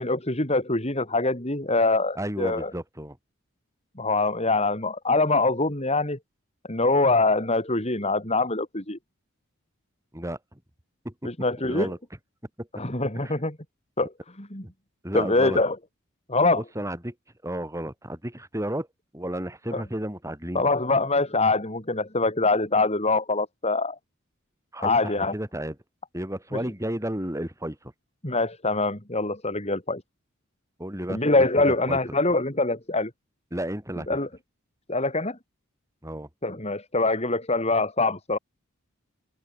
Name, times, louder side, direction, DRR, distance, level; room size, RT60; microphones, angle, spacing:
voice 1, 0.0-2.7 4.0-6.2 6.7-9.0 11.2-11.9 12.8-13.6 14.0-14.1 14.4-14.6 15.1-15.8 16.3-16.6 19.7-19.8 20.5-24.0 24.8-25.3 28.2-30.0 31.1-33.1 34.1-34.3 34.9-35.4 36.4-38.4, left 3 dB, 30° left, 5.0 m, -24 dB
voice 2, 2.2-3.2 10.1-10.6 11.0-11.3 11.6-12.0 12.6-12.7 13.2-13.4 15.0-15.6 16.6-17.1 17.4-18.9 19.1-20.7 24.7-25.8 26.1-27.9 30.8-32.2 33.5-34.2 36.0-36.3, right 1 dB, 15° right, 7.3 m, -33 dB
head